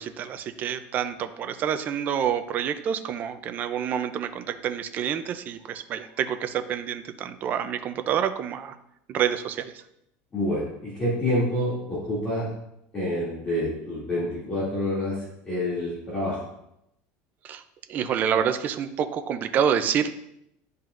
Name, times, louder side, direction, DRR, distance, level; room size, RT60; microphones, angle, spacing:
voice 1, 0.0-8.8 9.1-9.8 17.4-17.6 17.9-20.1, right 8 dB, 35° right, 9 dB, 0.5 m, -27 dB
voice 2, 10.3-12.5 12.9-16.4, left 1 dB, 20° left, -10 dB, 2.6 m, -27 dB
10.5 x 5.4 x 2.5 m, 0.80 s
cardioid pair, 155°, 5 cm